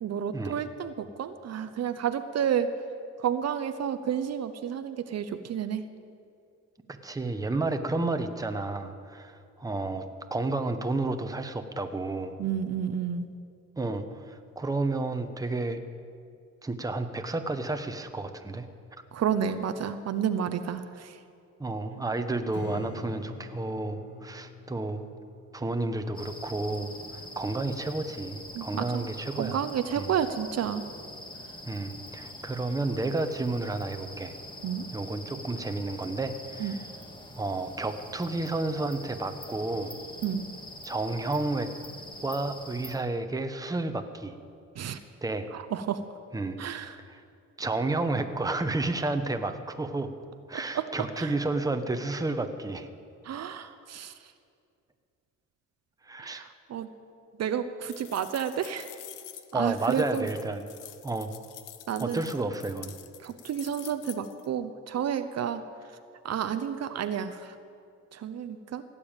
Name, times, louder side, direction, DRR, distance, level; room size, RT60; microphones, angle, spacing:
voice 1, 0.0-2.7 3.2-5.8 12.4-13.3 19.1-21.2 28.5-29.1 29.3-30.8 34.6-34.9 36.6-36.7 40.2-40.4 44.8-45.0 45.5-46.0 46.6-46.9 50.7-50.9 51.2-51.3 53.2-54.1 56.2-56.9 57.4-58.9 59.5-60.3 61.9-62.2 63.2-65.6 66.2-67.5 68.1-68.8, right 8 dB, 60° right, 10 dB, 0.8 m, -31 dB
voice 2, 7.0-10.0 10.3-12.3 13.8-15.8 16.6-18.7 21.6-25.0 25.5-29.6 29.9-30.1 31.7-34.3 34.9-36.8 37.3-39.9 40.8-41.7 42.2-44.4 45.2-45.5 46.3-46.6 47.1-47.2 47.6-50.1 50.5-52.9 56.0-56.5 59.5-60.7 61.0-61.3 62.0-62.9, right 2 dB, 10° right, 7 dB, 1.0 m, -31 dB
Strum, 22.5-27.7, left 3 dB, 50° left, 1.7 m, -46 dB
sound 1, 26.1-43.0, left 1 dB, 15° left, 1.7 m, -44 dB
sound 2, 57.9-64.5, left 12 dB, 85° left, 0.8 m, -47 dB
17.0 x 7.0 x 8.9 m, 2.4 s
cardioid pair, 90°, 30 cm